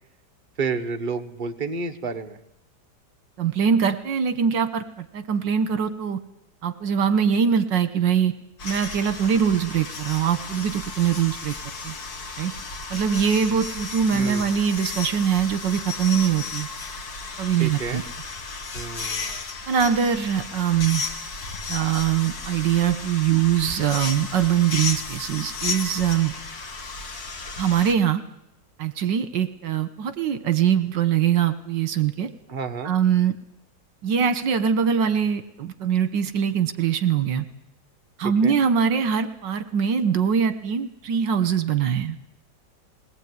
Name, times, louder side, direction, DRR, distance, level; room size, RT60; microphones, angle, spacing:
voice 1, 0.6-2.4 14.1-14.5 17.6-18.0 18.7-19.4 32.5-32.9 38.2-38.5, right 4 dB, 30° right, 6 dB, 1.6 m, -30 dB
voice 2, 3.4-6.2 6.6-8.3 8.6-11.5 11.8-11.9 12.4-12.5 12.9-16.7 17.4-18.0 19.7-21.0 21.7-26.3 27.6-28.2 28.8-32.3 32.8-33.4 34.0-37.5 38.2-42.2, right 8 dB, 75° right, 12 dB, 1.9 m, -22 dB
sound 1, 8.6-27.9, left 4 dB, 55° left, 2.4 m, -34 dB
20.5 x 19.0 x 9.6 m, 0.83 s
omnidirectional pair, 2.0 m